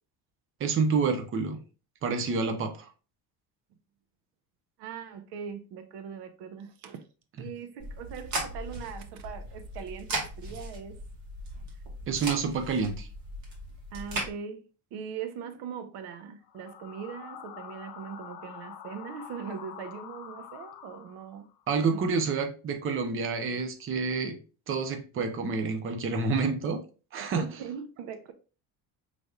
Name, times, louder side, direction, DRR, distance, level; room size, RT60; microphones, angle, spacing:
voice 1, 0.6-1.6 2.0-2.9 7.4-7.5 12.1-13.1 21.7-24.4 24.7-26.8 27.1-27.5, right 4 dB, 30° right, 0.7 m, -28 dB
voice 2, 4.8-7.0 7.4-11.0 13.9-14.6 14.9-21.5 27.2-28.3, right 7 dB, 75° right, 0.7 m, -40 dB
sound 1, 7.8-14.3, right 1 dB, 55° right, 2.0 m, -38 dB
sound 2, 16.4-21.5, left 9 dB, 65° left, 0.7 m, -46 dB
5.2 x 3.3 x 2.3 m
cardioid pair, 150°, 41 cm